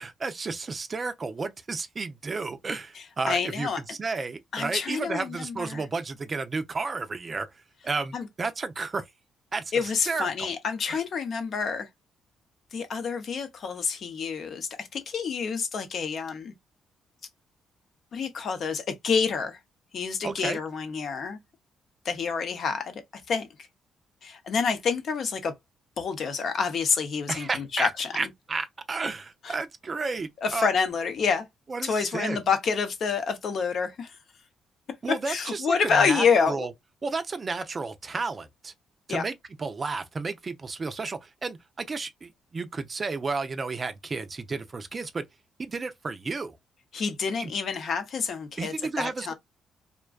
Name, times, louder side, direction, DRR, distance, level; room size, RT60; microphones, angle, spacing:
voice 1, 0.0-7.5 7.8-9.0 9.5-10.5 10.9-11.0 20.2-20.6 27.3-30.7 31.7-32.4 35.0-36.7 37.0-38.7 39.1-45.2 45.6-46.6 47.4-47.5 48.6-49.3, right 4 dB, 35° right, 0.4 m, -32 dB
voice 2, 3.3-3.8 4.5-5.8 8.1-8.3 9.7-11.9 12.7-16.5 18.1-19.6 19.9-21.4 22.0-23.0 23.3-23.5 24.2-25.5 26.0-28.3 29.4-29.5 30.4-31.5 31.8-34.1 35.1-36.7 39.1-39.2 46.9-49.3, left 5 dB, 60° left, 0.7 m, -28 dB
2.5 x 2.2 x 2.2 m
cardioid pair, 90°, 0 cm